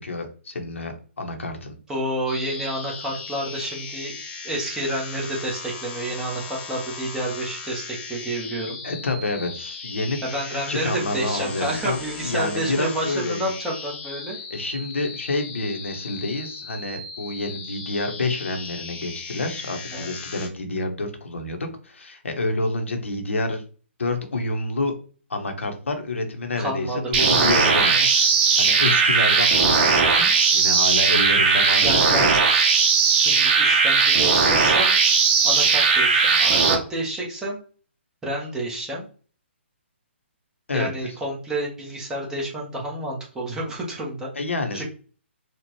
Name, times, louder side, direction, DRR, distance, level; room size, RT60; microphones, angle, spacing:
voice 1, 0.0-1.8 8.8-10.2 10.7-13.5 14.5-23.6 24.0-24.9 25.3-27.9 28.6-32.3 40.7-40.9 44.3-44.8, left 2 dB, 80° left, 5 dB, 1.0 m, -28 dB
voice 2, 1.9-4.1 4.4-8.8 10.2-14.4 19.9-20.3 26.6-28.3 31.8-35.0 35.4-37.6 38.2-39.0 40.7-44.3 44.7-44.8, right 1 dB, 10° right, -3 dB, 1.2 m, -30 dB
sound 1, 2.3-20.5, left 4 dB, 15° left, 0.8 m, -37 dB
sound 2, 27.1-36.7, right 5 dB, 40° right, 1.0 m, -18 dB
4.3 x 2.4 x 3.0 m, 0.38 s
hypercardioid pair, 140°, 7 cm